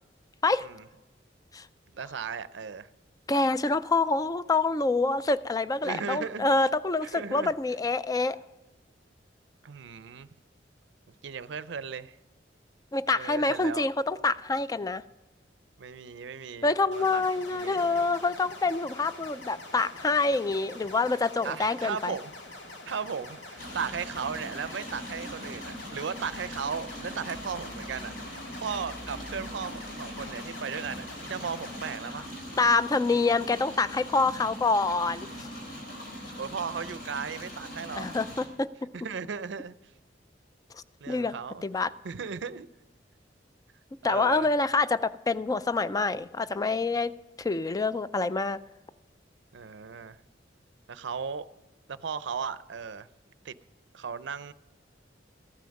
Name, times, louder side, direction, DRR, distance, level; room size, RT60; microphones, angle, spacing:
voice 1, 1.9-2.9 5.8-6.5 7.0-7.5 9.6-10.3 11.2-12.2 13.1-13.9 15.8-17.2 17.5-18.1 21.4-22.3 22.9-28.1 28.5-32.4 36.4-38.1 38.9-39.7 41.0-41.6 42.0-42.7 44.0-44.5 49.5-50.2 50.9-51.5 51.9-53.1 53.4-53.6 53.9-54.5, right 6 dB, 80° right, 0.5 m, -36 dB
voice 2, 3.3-8.4 12.9-15.0 16.6-22.2 32.6-35.5 37.9-38.7 40.7-41.3 41.6-41.9 44.0-48.6, left 3 dB, 20° left, 0.3 m, -26 dB
sound 1, 16.9-32.0, left 2 dB, 85° left, 1.8 m, -45 dB
sound 2, 23.6-38.5, equal, 55° left, 4.2 m, -41 dB
14.5 x 9.3 x 5.2 m
head